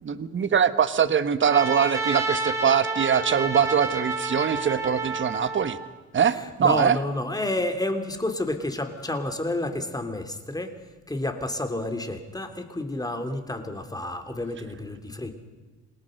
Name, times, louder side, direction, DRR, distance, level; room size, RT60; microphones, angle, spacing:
voice 1, 0.0-5.8 6.1-7.0, right 7 dB, 40° right, 12 dB, 1.3 m, -23 dB
Trumpet, 1.4-5.9, right 3 dB, 10° right, 3.9 m, -29 dB
voice 2, 6.2-10.7 11.1-15.3, left 1 dB, 10° left, 6 dB, 3.1 m, -30 dB
28.0 x 19.5 x 6.6 m, 1.3 s
cardioid pair, 90°, 30 cm